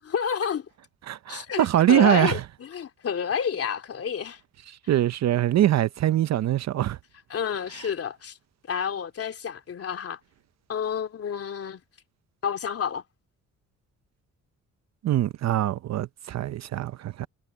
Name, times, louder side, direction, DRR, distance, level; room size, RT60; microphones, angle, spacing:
voice 1, 0.1-0.7 1.3-4.4 7.3-8.4 8.7-10.2 10.7-11.8 12.4-13.0, left 7 dB, 50° left, 3.0 m, -29 dB
voice 2, 1.1-2.4 4.9-7.0 15.0-17.3, right 12 dB, 60° right, 0.7 m, -23 dB
cardioid pair, 90°, 30 cm